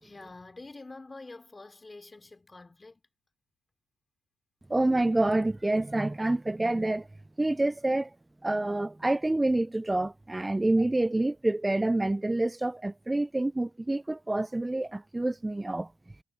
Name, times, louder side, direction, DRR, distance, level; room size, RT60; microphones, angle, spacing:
voice 1, 0.0-3.0, left 3 dB, 20° left, 3.4 m, -47 dB
voice 2, 4.7-7.1 7.4-8.1 8.4-15.9, right 2 dB, 15° right, 0.4 m, -27 dB
cardioid pair, 90°, 0 cm